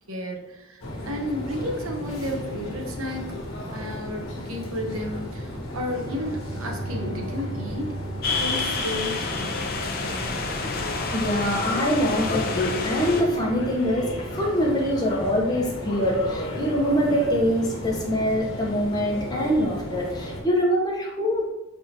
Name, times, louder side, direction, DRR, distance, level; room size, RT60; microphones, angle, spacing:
voice 1, 0.1-3.4 3.7-8.0 8.3-10.5, left 1 dB, 80° right, 1 dB, 0.8 m, -33 dB
sound 1, 0.8-20.4, left 1 dB, 80° left, 1.1 m, -34 dB
Bowed string instrument, 5.9-9.7, right 2 dB, 50° right, 0.9 m, -38 dB
sound 2, 8.2-13.2, left 3 dB, 45° left, 0.6 m, -28 dB
voice 2, 11.1-14.1 14.4-21.5, equal, 20° left, -2 dB, 0.8 m, -24 dB
5.4 x 3.4 x 2.8 m, 0.96 s
head